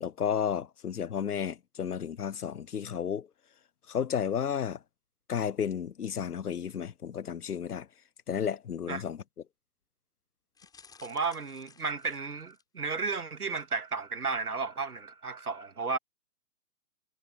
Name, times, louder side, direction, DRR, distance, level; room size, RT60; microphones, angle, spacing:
voice 1, 0.0-3.3 3.9-4.8 5.3-7.9 8.3-9.2, left 8 dB, 85° left, 0.8 m, -32 dB
sound 1, 10.5-12.8 13.4-13.6 13.9-14.0, left 6 dB, 10° left, 6.3 m, -57 dB
voice 2, 11.0-16.0, right 4 dB, 80° right, 2.5 m, -33 dB
figure-of-eight pair, 135°, 44 cm